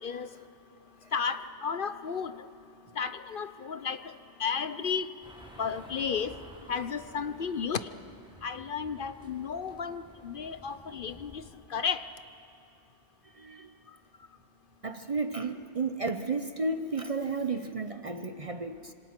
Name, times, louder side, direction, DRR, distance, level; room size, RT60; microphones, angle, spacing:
voice 1, 1.1-2.5 3.0-4.1 4.4-5.1 5.6-6.4 6.7-7.9 8.4-11.4 11.7-12.0, left 6 dB, 55° left, 12 dB, 0.9 m, -33 dB
sound 1, 5.2-11.5, equal, 5° right, 3.7 m, -52 dB
voice 2, 13.3-13.7 14.8-18.9, right 3 dB, 35° right, 10 dB, 0.7 m, -33 dB
26.5 x 26.5 x 5.9 m, 2.8 s
omnidirectional pair, 1.1 m